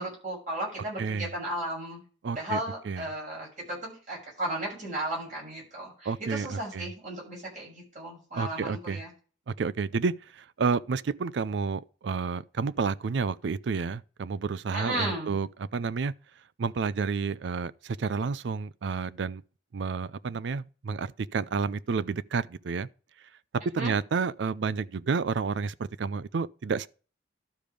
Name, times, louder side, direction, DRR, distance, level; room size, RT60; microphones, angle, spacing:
voice 1, 0.0-2.0 2.3-9.1 14.7-15.4 23.8-23.9, right 1 dB, 45° right, 6.3 m, -35 dB
voice 2, 1.0-1.3 2.2-2.6 2.9-3.1 6.1-6.9 8.4-9.0 9.5-15.5 15.7-16.1 16.6-19.4 19.7-22.9 23.7-26.9, right 5 dB, 65° right, 0.4 m, -30 dB
12.0 x 5.1 x 5.1 m
head